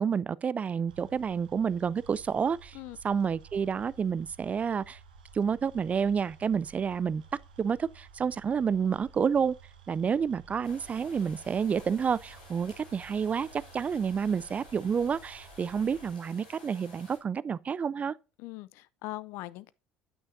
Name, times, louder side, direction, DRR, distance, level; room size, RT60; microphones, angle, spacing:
voice 1, 0.0-2.8 3.0-5.0 5.3-7.2 7.6-9.6 9.9-18.2, right 6 dB, 30° right, 0.3 m, -29 dB
sound 1, 0.9-16.1, right 5 dB, 80° right, 1.1 m, -54 dB
sound 2, 10.6-17.2, left 2 dB, 80° left, 4.2 m, -53 dB
voice 2, 18.4-19.7, left 18 dB, 65° left, 0.4 m, -41 dB
9.4 x 8.7 x 2.6 m
figure-of-eight pair, 60°, 5 cm